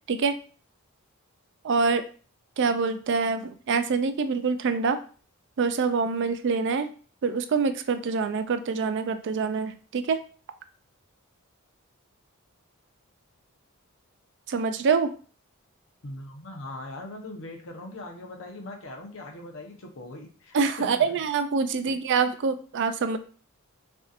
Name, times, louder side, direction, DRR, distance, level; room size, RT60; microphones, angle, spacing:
voice 1, 1.6-2.0 2.6-5.0 5.6-6.9 7.2-10.2 14.5-15.1 20.5-23.2, right 5 dB, 55° right, 10 dB, 0.4 m, -25 dB
voice 2, 16.0-21.2 21.9-22.0, left 2 dB, 60° left, 2 dB, 0.9 m, -41 dB
5.8 x 2.7 x 2.5 m, 0.40 s
head